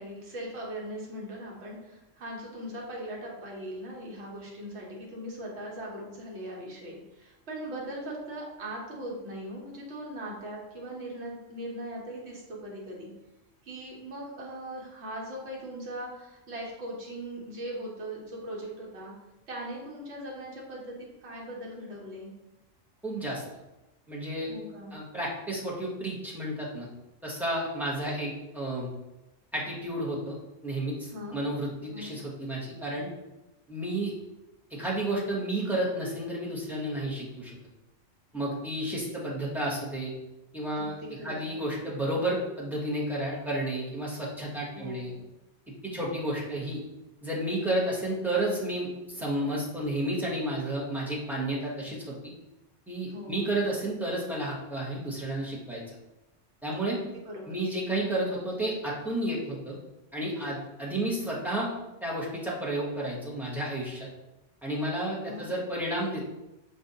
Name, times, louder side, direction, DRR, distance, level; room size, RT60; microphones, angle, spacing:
voice 1, 0.0-13.1 13.6-19.1 19.5-21.0 21.2-22.3 24.5-24.9 31.1-31.4 31.9-32.1 40.8-41.6 44.7-45.2 53.1-53.4 56.9-57.6 65.3-65.5, right 1 dB, 65° right, -3 dB, 1.2 m, -40 dB
voice 2, 23.0-23.4 24.1-24.5 24.9-26.9 27.2-28.9 29.5-30.4 30.6-33.1 33.7-34.1 34.7-37.5 38.3-40.1 40.5-40.9 41.2-45.1 45.8-46.8 47.2-52.3 52.9-55.8 56.6-57.0 57.5-59.8 60.1-61.7 62.0-64.1 64.6-66.2, right 1 dB, ahead, -6 dB, 0.6 m, -31 dB
5.0 x 2.4 x 2.7 m, 0.98 s
omnidirectional pair, 1.3 m